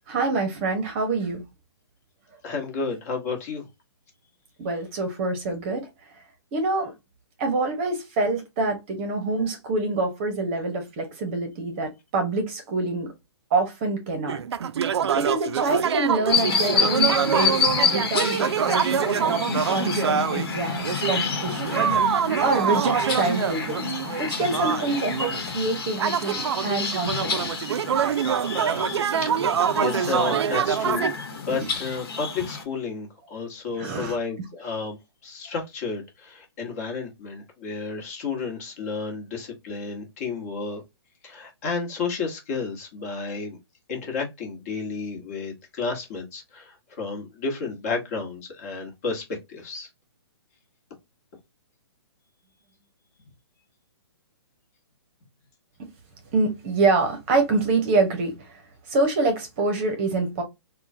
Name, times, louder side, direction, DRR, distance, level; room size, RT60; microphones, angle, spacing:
voice 1, 0.1-1.4 4.6-5.9 6.5-6.9 7.4-13.1 13.5-14.4 15.1-19.4 19.7-21.9 22.4-23.8 24.2-27.7 31.5-31.7 33.8-34.1 56.3-58.6 58.9-60.4, right 3 dB, 25° right, 0.8 m, -26 dB
voice 2, 2.4-3.7 29.2-31.0 31.3-40.8 41.2-43.6 43.9-49.9, left 4 dB, 35° left, 1.2 m, -32 dB
sound 1, 14.3-20.5 20.8-31.1, right 8 dB, 80° right, 0.4 m, -25 dB
sound 2, 16.3-32.6, left 5 dB, 60° left, 1.2 m, -29 dB
3.6 x 2.2 x 2.6 m
hypercardioid pair, 160°, 14 cm